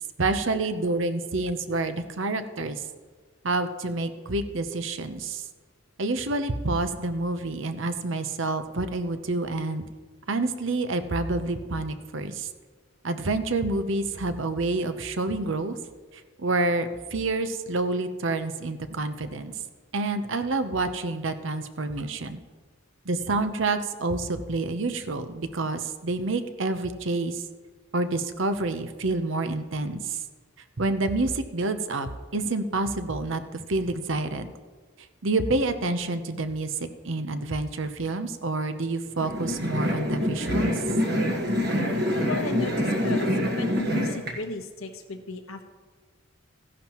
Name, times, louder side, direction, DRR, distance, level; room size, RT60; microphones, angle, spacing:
voice 1, 0.2-2.8 3.4-5.4 6.0-9.8 10.3-12.5 13.0-15.8 16.4-19.5 19.9-22.4 23.1-27.4 27.9-30.2 30.8-34.5 35.2-36.7 37.0-40.8, right 2 dB, 65° right, 10 dB, 0.8 m, -28 dB
sharpening pencil, 39.2-44.3, equal, 50° right, 1.5 m, -26 dB
voice 2, 42.3-43.3 43.6-45.7, left 2 dB, 85° left, 6 dB, 1.2 m, -35 dB
15.0 x 11.0 x 3.0 m, 1.5 s
head